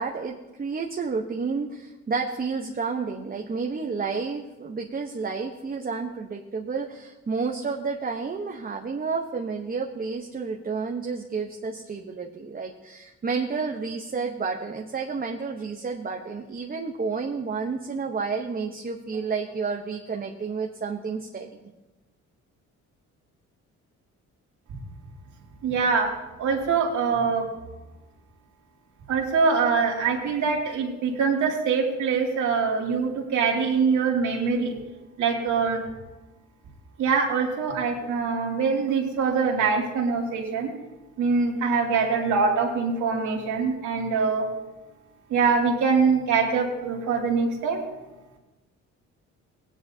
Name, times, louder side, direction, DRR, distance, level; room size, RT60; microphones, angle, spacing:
voice 1, 0.0-21.6, right 4 dB, 30° right, 1 dB, 0.9 m, -30 dB
voice 2, 25.6-26.1 26.4-27.5 29.1-34.7 35.2-35.8 37.0-40.7 41.2-44.5 45.3-47.8, right 5 dB, 75° right, -1 dB, 2.6 m, -24 dB
17.5 x 9.9 x 2.8 m, 1.1 s
cardioid pair, 90°, 30 cm